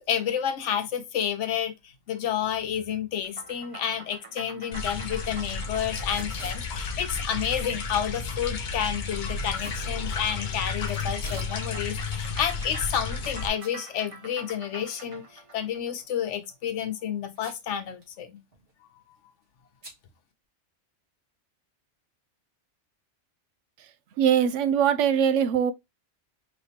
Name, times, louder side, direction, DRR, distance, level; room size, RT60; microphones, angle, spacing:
voice 1, 0.1-1.7 2.1-15.2 15.5-18.4, left 9 dB, 80° left, 1.1 m, -30 dB
sound 1, 3.2-7.9 11.2-16.6, right 3 dB, 30° right, 0.9 m, -47 dB
sound 2, 4.7-13.5, left 4 dB, 50° left, 0.6 m, -32 dB
Packing tape duct tape / Tearing, 6.1-6.6 9.5-9.8 10.9-11.6 11.9-12.0 12.7-13.3 13.6-13.7 14.1-14.2 16.2-16.4 17.3-17.7 18.0-18.1 18.4-18.7 19.8-20.0, right 2 dB, 55° right, 2.2 m, -44 dB
voice 2, 24.2-25.7, right 8 dB, 85° right, 0.9 m, -22 dB
4.9 x 3.1 x 2.7 m
omnidirectional pair, 1.2 m